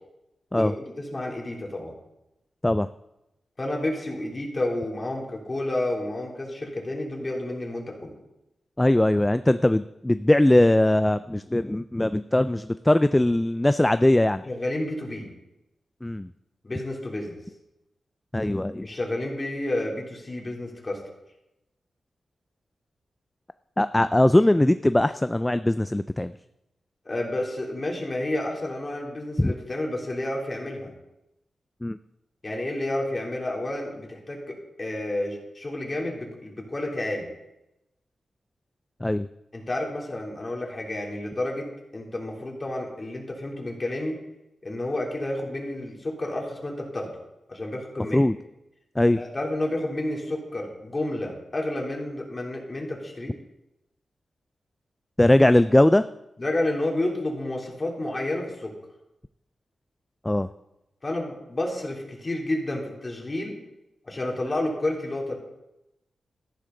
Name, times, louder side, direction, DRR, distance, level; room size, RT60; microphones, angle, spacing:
voice 1, 0.5-1.9 3.6-8.1 14.4-15.3 16.6-17.4 18.8-21.0 27.0-30.9 32.4-37.3 39.5-44.2 44.6-47.1 47.5-48.2 49.2-53.3 56.4-58.7 61.0-63.6 64.0-65.3, left 1 dB, 30° left, -1 dB, 3.1 m, -30 dB
voice 2, 8.8-14.4 16.0-16.3 18.3-18.9 23.8-26.3 29.4-29.5 31.8-32.0 39.0-39.3 48.1-48.4 49.0-49.2 55.2-56.0 60.2-60.5, left 1 dB, 10° left, 12 dB, 0.3 m, -20 dB
13.5 x 11.0 x 3.9 m, 0.91 s
wide cardioid pair, 105°, 0 cm